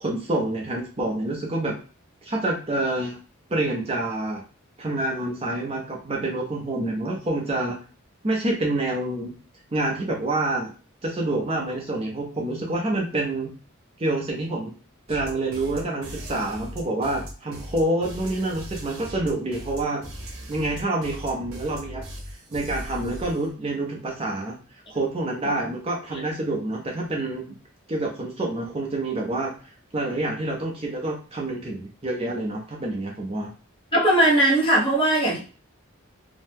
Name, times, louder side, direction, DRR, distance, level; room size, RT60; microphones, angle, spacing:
voice 1, 0.0-1.8 2.2-3.2 3.5-4.4 4.8-7.8 8.2-9.3 9.7-10.7 11.0-13.5 14.0-14.7 15.1-20.1 20.5-24.6 24.9-27.4 27.9-29.5 29.9-33.5, right 2 dB, 30° right, -1 dB, 0.5 m, -27 dB
sound 1, 15.1-23.5, equal, 85° right, 0.8 m, -38 dB
voice 2, 33.9-35.4, right 1 dB, 25° left, -5 dB, 1.1 m, -20 dB
2.7 x 2.1 x 3.4 m, 0.36 s
head